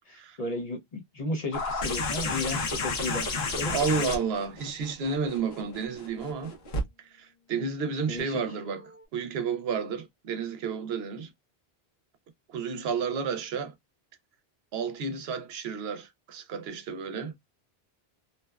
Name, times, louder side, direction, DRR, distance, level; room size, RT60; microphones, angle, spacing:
voice 1, 0.1-3.3 3.6-4.0 8.1-8.4, left 2 dB, 45° left, 0.7 m, -34 dB
sound 1, 1.5-6.8 8.2-8.3, left 3 dB, 80° left, 1.0 m, -31 dB
voice 2, 3.7-6.5 7.0-11.3 12.5-13.7 14.7-17.3, right 5 dB, 80° right, 0.8 m, -31 dB
2.7 x 2.1 x 2.2 m
omnidirectional pair, 1.0 m